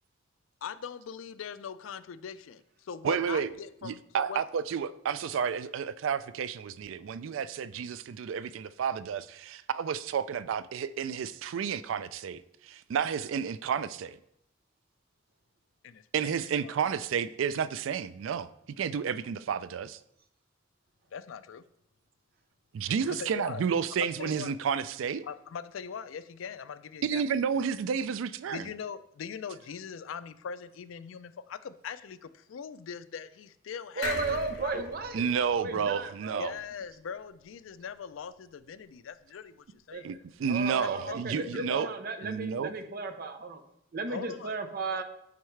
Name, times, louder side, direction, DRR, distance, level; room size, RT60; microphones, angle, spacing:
voice 1, 0.6-4.4 15.8-16.4 16.6-16.8 21.1-21.6 23.0-23.6 24.2-24.5 25.2-27.2 28.5-34.9 36.4-40.1 40.8-40.9 41.5-41.6 42.2-42.3 44.1-44.5 45.0-45.1, left 7 dB, 90° left, 0.4 m, -41 dB
voice 2, 3.0-3.5 3.8-14.2 16.1-18.5 18.8-20.0 22.7-25.2 27.0-28.7 35.1-36.5 40.0-41.9 42.2-42.7, right 7 dB, 85° right, 0.3 m, -31 dB
sound 1, 34.0-37.5 37.9-38.0 38.2-38.3, left 3 dB, 65° left, 1.4 m, -41 dB
voice 3, 34.0-35.2 35.6-36.4 39.9-40.0 40.5-43.6 43.9-45.0, right 3 dB, 50° right, 0.7 m, -34 dB
9.4 x 4.6 x 3.2 m
head